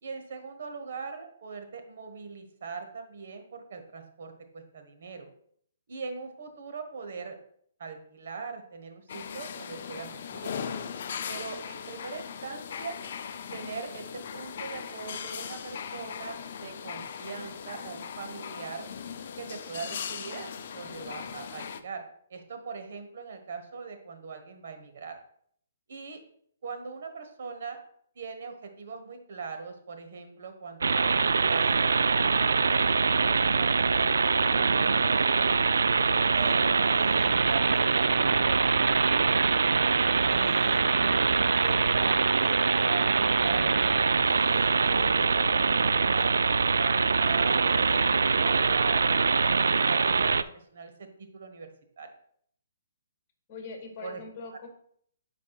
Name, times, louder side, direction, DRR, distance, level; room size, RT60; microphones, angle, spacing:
voice 1, 0.0-5.3 5.9-7.4 7.8-10.5 11.3-13.0 13.5-18.9 19.4-20.5 20.7-22.0 22.3-25.1 25.9-26.2 26.6-27.8 28.1-34.1 34.5-35.6 36.3-39.6 40.3-43.7 44.2-46.4 46.8-51.7 52.0-52.1 54.0-54.2, right 5 dB, 65° right, 6 dB, 1.2 m, -41 dB
sound 1, 9.1-21.8, left 7 dB, 55° left, 0.5 m, -39 dB
sound 2, 30.8-50.4, right 4 dB, 85° right, 0.3 m, -24 dB
voice 2, 34.4-35.4 53.5-54.7, left 4 dB, 30° left, 1 dB, 1.9 m, -43 dB
9.7 x 4.8 x 2.4 m, 0.65 s
hypercardioid pair, 150°, 0 cm